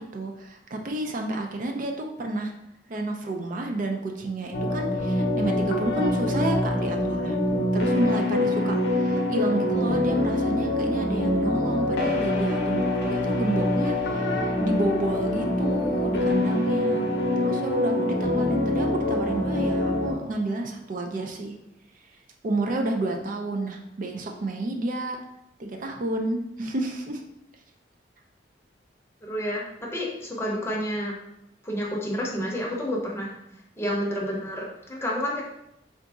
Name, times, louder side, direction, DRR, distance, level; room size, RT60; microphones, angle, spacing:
voice 1, 0.0-2.5 2.9-7.4 7.7-17.1 17.4-21.6 22.4-25.2 25.6-27.2, right 2 dB, 50° right, 2 dB, 0.4 m, -30 dB
sound 1, 4.5-20.1, left 1 dB, 70° left, 0.7 m, -25 dB
voice 2, 29.3-29.7 29.9-31.2 31.6-33.3 33.8-35.4, equal, 15° left, -3 dB, 0.7 m, -29 dB
3.8 x 2.6 x 3.5 m, 0.84 s
head